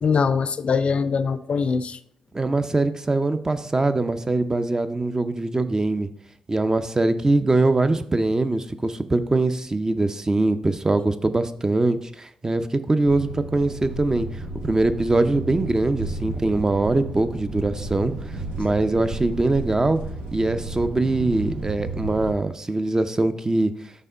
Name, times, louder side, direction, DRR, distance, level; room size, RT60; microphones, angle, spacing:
voice 1, 0.0-2.0, left 5 dB, 55° left, 12 dB, 0.4 m, -22 dB
voice 2, 2.3-6.1 6.5-14.3 14.6-20.0 20.3-23.7, right 2 dB, 25° right, 11 dB, 0.5 m, -22 dB
sound 1, 13.0-22.3, right 2 dB, 80° right, 1.0 m, -33 dB
5.5 x 3.6 x 4.9 m, 0.69 s
supercardioid pair, 45°, 2 cm